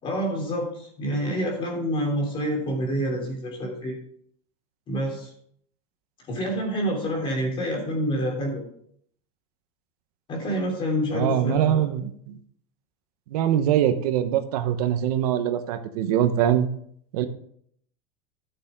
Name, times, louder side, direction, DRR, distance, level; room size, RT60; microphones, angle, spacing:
voice 1, 0.0-4.0 4.9-5.3 6.3-8.6 10.3-11.9, equal, 25° left, 1 dB, 3.3 m, -27 dB
voice 2, 11.1-12.4 13.3-16.7 17.1-17.3, right 10 dB, 75° right, 9 dB, 1.1 m, -23 dB
14.0 x 7.0 x 3.7 m, 0.65 s
supercardioid pair, 155°, 20 cm